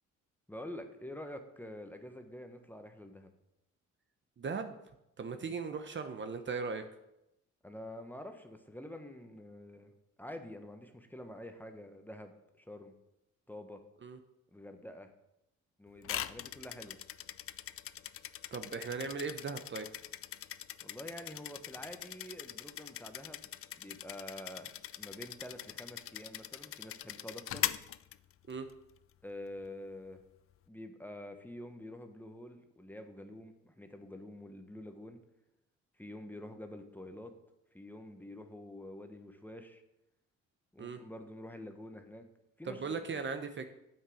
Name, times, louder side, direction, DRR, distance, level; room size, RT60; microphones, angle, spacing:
voice 1, 0.5-3.3 7.6-9.9 10.2-12.9 13.5-13.8 14.5-15.1 15.8-17.0 20.8-23.5 23.8-24.7 25.0-27.7 29.2-30.2 30.7-35.2 36.0-37.3 37.7-39.8 40.7-42.2 42.6-43.3, left 1 dB, 5° left, 6 dB, 1.1 m, -47 dB
voice 2, 4.4-4.8 5.2-6.8 14.0-14.2 18.5-19.9 28.5-28.7 40.8-41.0 42.6-43.7, right 5 dB, 40° right, 8 dB, 0.8 m, -38 dB
sound 1, 16.0-28.7, left 11 dB, 50° left, 0.4 m, -42 dB
9.0 x 7.5 x 5.0 m, 0.86 s
cardioid pair, 90°, 30 cm